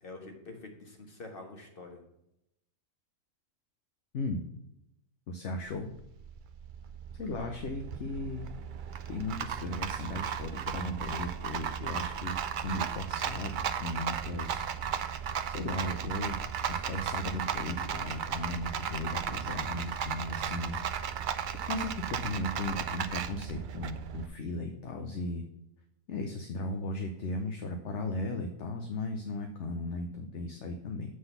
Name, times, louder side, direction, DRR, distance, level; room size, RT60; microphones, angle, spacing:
voice 1, 0.0-2.0 7.4-7.5, left 2 dB, 40° left, 2 dB, 1.7 m, -46 dB
voice 2, 5.3-5.9 7.1-8.5 9.1-14.6 15.5-16.4 16.7-21.3 21.7-25.4 26.1-31.1, left 2 dB, 60° left, 4 dB, 1.0 m, -36 dB
Rattle, 5.7-24.3, right 8 dB, 65° right, 0.5 m, -35 dB
8.0 x 3.9 x 6.8 m, 0.83 s
omnidirectional pair, 1.4 m